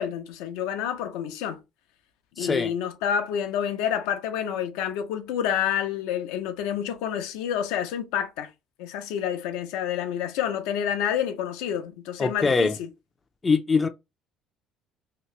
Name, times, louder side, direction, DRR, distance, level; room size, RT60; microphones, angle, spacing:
voice 1, 0.0-1.6 2.4-8.5 8.8-12.9, left 9 dB, 85° left, 0.5 m, -28 dB
voice 2, 2.4-2.7 12.2-12.7 13.4-13.9, left 4 dB, 25° left, 0.4 m, -22 dB
2.8 x 2.4 x 3.1 m
supercardioid pair, 90°, 0 cm